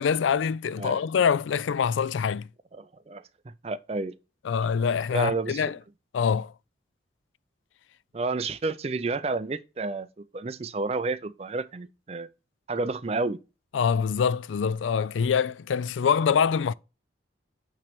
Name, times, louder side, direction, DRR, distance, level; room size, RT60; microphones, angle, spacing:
voice 1, 0.0-2.5 4.4-5.8 6.1-6.5 13.7-16.7, left 6 dB, 90° left, 0.4 m, -25 dB
voice 2, 2.7-3.2 3.6-4.1 5.1-5.7 8.1-12.3 12.7-13.4, right 3 dB, 35° right, 0.4 m, -30 dB
8.8 x 3.2 x 6.0 m
head